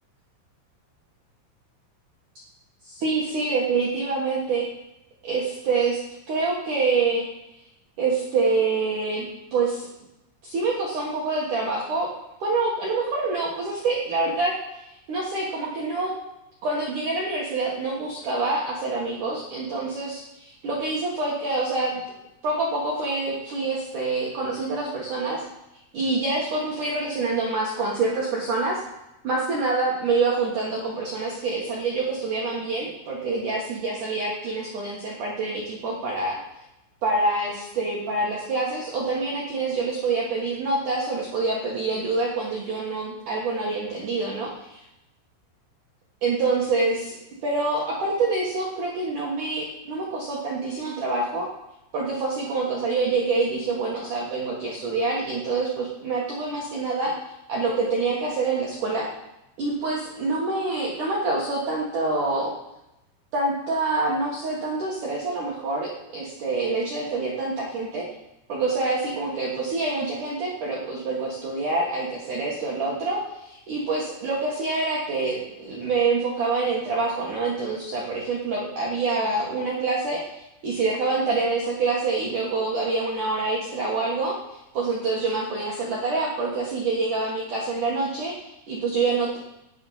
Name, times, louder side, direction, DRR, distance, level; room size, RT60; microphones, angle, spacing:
voice 1, 2.8-4.7 5.2-6.0 6.3-7.3 8.0-9.9 10.4-12.1 12.4-16.2 16.6-22.0 22.4-25.4 25.9-28.8 29.2-36.4 37.0-44.8 46.2-47.2 47.4-51.5 51.9-57.1 57.5-59.1 59.6-62.5 63.3-68.0 68.5-80.4 80.6-89.4, right 3 dB, 65° right, -4 dB, 2.0 m, -26 dB
17.5 x 6.3 x 5.6 m, 0.91 s
omnidirectional pair, 5.9 m